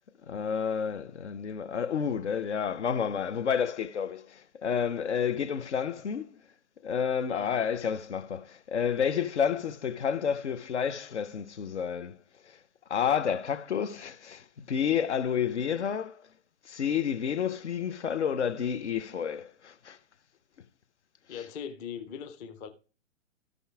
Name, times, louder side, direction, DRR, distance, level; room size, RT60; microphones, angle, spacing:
voice 1, 0.3-6.4 6.8-12.2 12.9-16.3 16.6-20.0 21.3-21.5, left 7 dB, 60° left, 0.9 m, -30 dB
voice 2, 7.3-7.6 21.3-22.7, left 7 dB, 15° left, 0.6 m, -40 dB
13.5 x 5.5 x 3.4 m
figure-of-eight pair, 125°, 39 cm